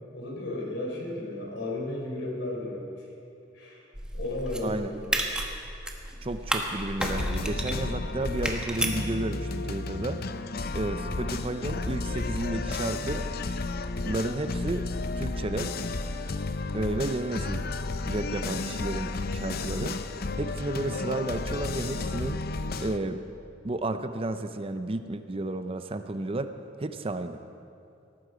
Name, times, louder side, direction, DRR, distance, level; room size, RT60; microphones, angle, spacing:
voice 1, 0.1-3.1 3.5-3.9 4.1-5.1, left 1 dB, 70° left, -1 dB, 4.1 m, -34 dB
sound 1, 3.9-9.0, right 1 dB, 5° right, 1.2 m, -33 dB
voice 2, 6.2-10.2 10.7-13.3 14.1-14.9 15.2-15.7 16.7-17.7 18.1-20.0 20.4-22.4 22.8-23.2 23.6-26.5 26.8-27.4, right 2 dB, 30° right, 9 dB, 0.6 m, -32 dB
sound 2, 7.0-23.0, left 3 dB, 55° left, 0.7 m, -32 dB
18.5 x 14.0 x 4.9 m, 2.6 s
head